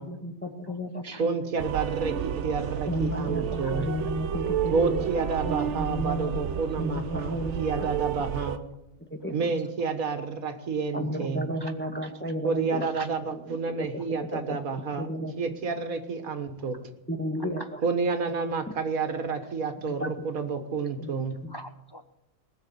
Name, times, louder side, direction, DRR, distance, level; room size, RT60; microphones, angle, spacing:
voice 1, 0.0-1.3 2.9-6.4 6.8-7.9 9.1-9.5 10.9-12.9 13.3-13.9 14.2-15.3 17.1-17.8 18.7-18.8 19.8-20.1 21.0-21.1 21.4-21.5, equal, 10° left, 3 dB, 1.5 m, -33 dB
voice 2, 1.2-3.9 4.7-8.7 9.3-11.5 12.4-15.1 15.4-16.8 17.8-21.4, right 5 dB, 85° right, 7 dB, 1.8 m, -29 dB
sound 1, 1.6-8.6, right 9 dB, 65° right, 1.0 m, -31 dB
voice 3, 9.0-9.3 11.2-11.3 11.6-11.7 12.0-12.1 12.8-13.1 17.6-17.7 20.0-20.1 21.5-22.0, equal, 35° left, 7 dB, 0.4 m, -42 dB
19.5 x 6.8 x 8.4 m, 0.94 s
omnidirectional pair, 1.4 m